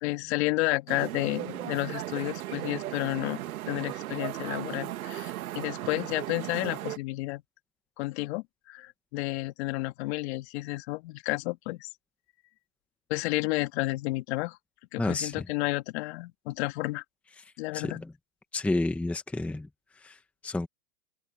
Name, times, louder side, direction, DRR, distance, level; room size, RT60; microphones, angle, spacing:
voice 1, 0.0-7.4 8.0-11.9 13.1-14.6 14.9-17.0 17.6-18.0, left 21 dB, 45° left, 2.0 m, -31 dB
sound 1, 0.9-7.0, right 14 dB, 65° right, 1.5 m, -36 dB
voice 2, 15.0-15.5 17.4-17.5 17.7-18.1 18.5-20.7, left 2 dB, 5° left, 1.0 m, -31 dB
open air
hypercardioid pair, 145°, 45 cm